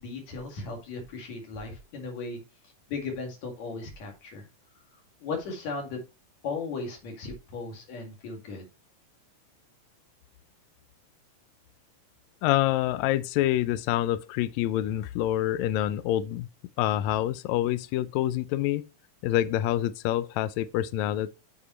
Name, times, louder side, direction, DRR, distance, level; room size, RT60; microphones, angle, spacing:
voice 1, 0.0-2.4 2.9-4.5 5.2-6.0 6.4-8.6, left 4 dB, 60° left, 3.2 m, -36 dB
voice 2, 12.4-16.5 16.8-18.8 19.2-21.3, left 13 dB, 90° left, 1.6 m, -26 dB
8.2 x 5.1 x 3.0 m
omnidirectional pair, 3.7 m